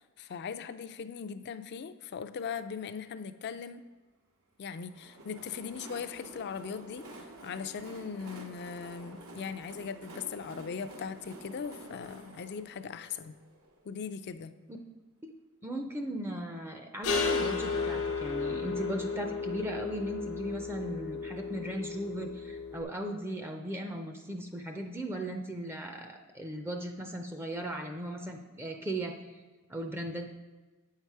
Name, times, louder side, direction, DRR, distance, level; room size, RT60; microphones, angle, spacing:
voice 1, 0.0-3.8 4.6-13.4 13.8-14.5, left 6 dB, 50° left, 10 dB, 0.4 m, -39 dB
Train, 4.7-14.4, right 2 dB, 75° right, 0.9 m, -50 dB
voice 2, 15.6-29.2 29.7-30.3, right 1 dB, 10° right, 4 dB, 0.5 m, -37 dB
sound 1, 17.0-22.8, left 4 dB, 80° left, 1.1 m, -33 dB
8.3 x 5.7 x 4.7 m, 1.3 s
head